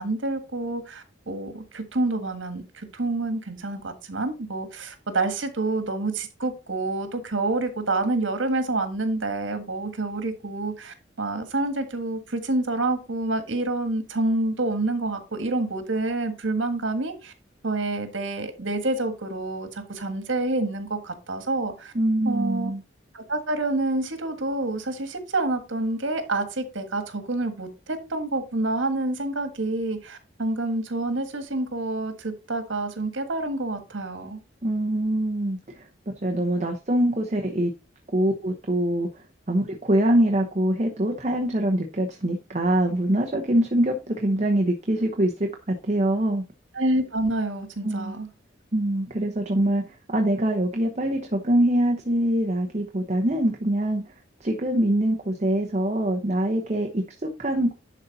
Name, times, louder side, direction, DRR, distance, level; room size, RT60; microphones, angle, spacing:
voice 1, 0.0-17.3 17.6-21.9 22.2-22.7 23.1-34.4 46.7-48.3, right 2 dB, 85° right, 1.6 m, -28 dB
voice 2, 21.9-22.8 34.6-35.9 36.2-37.7 38.1-39.1 39.5-46.4 47.8-48.2 48.7-54.0 54.4-57.7, right 1 dB, 35° right, 0.9 m, -24 dB
11.0 x 4.1 x 4.1 m
head